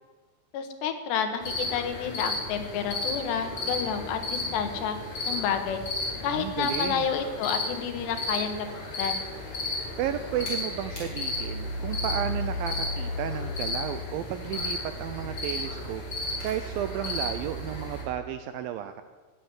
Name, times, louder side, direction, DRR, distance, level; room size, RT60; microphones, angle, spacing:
voice 1, 0.5-5.0 5.3-5.8 6.2-8.7 9.0-9.2, left 7 dB, 90° left, 7 dB, 3.5 m, -30 dB
sound 1, 1.4-18.0, left 2 dB, 25° left, 5.7 m, -33 dB
voice 2, 6.3-7.1 10.0-19.0, right 11 dB, 80° right, 9 dB, 2.1 m, -33 dB
14.5 x 7.8 x 9.8 m, 1.4 s
omnidirectional pair, 4.7 m